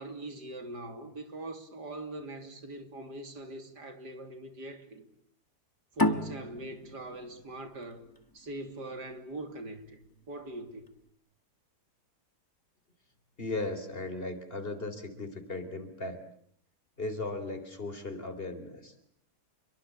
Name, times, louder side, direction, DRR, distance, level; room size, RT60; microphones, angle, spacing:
voice 1, 0.0-5.1 6.0-8.0 8.3-10.0 10.3-10.9, right 1 dB, 90° right, 3.8 m, -42 dB
sound 1, 6.0-9.2, left 2 dB, 15° left, 1.5 m, -32 dB
voice 2, 13.4-16.2 17.0-18.9, left 2 dB, 35° left, 4.1 m, -37 dB
29.0 x 23.5 x 8.7 m
omnidirectional pair, 1.7 m